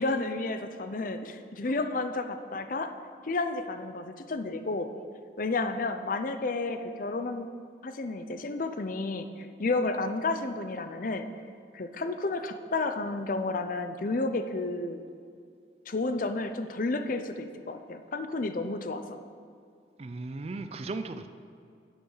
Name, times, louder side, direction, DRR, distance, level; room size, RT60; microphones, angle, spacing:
voice 1, 0.0-2.9 3.2-4.9 5.4-7.5 7.8-11.3 11.7-15.0 15.9-19.2, left 3 dB, 50° left, 8 dB, 0.6 m, -31 dB
voice 2, 20.0-21.3, right 3 dB, 35° right, 9 dB, 0.4 m, -36 dB
11.5 x 8.2 x 3.9 m, 2.3 s
head